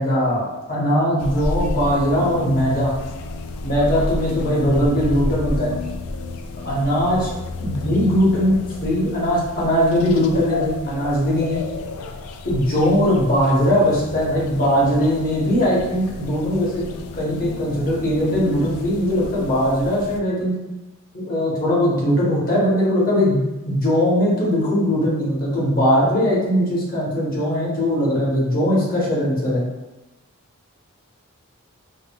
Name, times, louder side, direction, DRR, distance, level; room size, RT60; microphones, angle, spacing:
voice 1, 0.0-2.9 3.6-5.7 6.6-7.3 7.6-11.6 12.4-16.8 17.1-20.6 21.1-29.6, equal, 40° left, -6 dB, 0.9 m, -20 dB
sound 1, 1.2-20.2, left 2 dB, 90° left, 0.3 m, -31 dB
3.6 x 2.2 x 2.2 m, 1.0 s
head